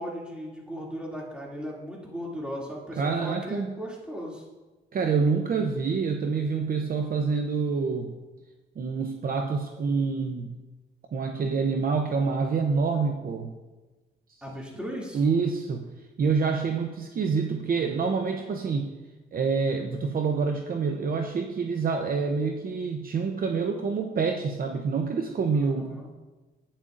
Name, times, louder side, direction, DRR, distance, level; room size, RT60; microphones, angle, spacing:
voice 1, 0.0-4.4 14.4-15.2 25.5-26.1, equal, 5° right, -4 dB, 2.5 m, -37 dB
voice 2, 3.0-3.7 4.9-8.1 8.8-10.5 11.1-13.5 15.1-15.8 16.2-18.9 19.3-26.0, right 5 dB, 45° right, 4 dB, 0.7 m, -27 dB
11.5 x 8.9 x 2.5 m, 1.2 s
cardioid pair, 90°, 20 cm